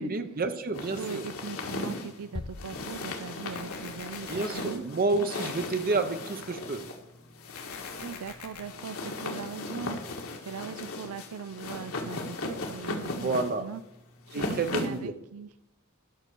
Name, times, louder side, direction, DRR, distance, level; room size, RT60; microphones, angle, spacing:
voice 1, 0.0-1.2 4.3-6.9 13.1-13.7 14.3-15.1, right 3 dB, 45° right, 8 dB, 0.8 m, -30 dB
sound 1, 0.7-15.1, left 2 dB, 70° left, 1.8 m, -37 dB
voice 2, 1.0-4.8 8.0-10.0 10.4-13.8 14.3-15.5, right 6 dB, 85° right, 13 dB, 0.5 m, -40 dB
sound 2, 2.3-3.7, left 2 dB, 20° left, 0.4 m, -42 dB
sound 3, 3.5-4.6 7.5-8.6, left 6 dB, 90° left, 2.1 m, -44 dB
12.5 x 6.1 x 6.8 m, 0.84 s
head